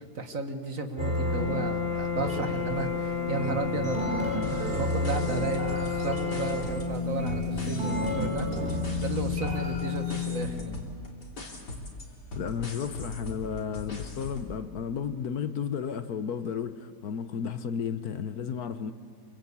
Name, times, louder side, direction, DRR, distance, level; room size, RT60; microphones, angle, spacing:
voice 1, 0.0-10.8, right 3 dB, 55° right, 6 dB, 2.0 m, -34 dB
sound 1, 1.0-10.4, left 3 dB, 35° right, 3.7 m, -30 dB
sound 2, 4.4-7.0 7.3-14.5, left 2 dB, 85° left, 4.0 m, -40 dB
voice 2, 12.3-18.9, left 7 dB, 70° left, 11 dB, 1.4 m, -33 dB
26.5 x 24.5 x 8.4 m, 2.1 s
omnidirectional pair, 1.8 m